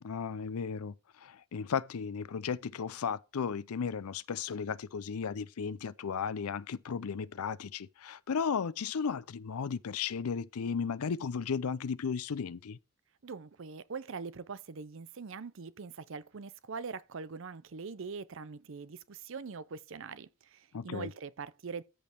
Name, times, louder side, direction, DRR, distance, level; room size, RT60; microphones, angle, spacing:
voice 1, 0.0-0.9 1.2-12.8 20.7-21.1, left 6 dB, 85° left, 0.5 m, -35 dB
voice 2, 13.2-21.8, right 5 dB, 60° right, 0.6 m, -43 dB
13.5 x 5.2 x 4.4 m
head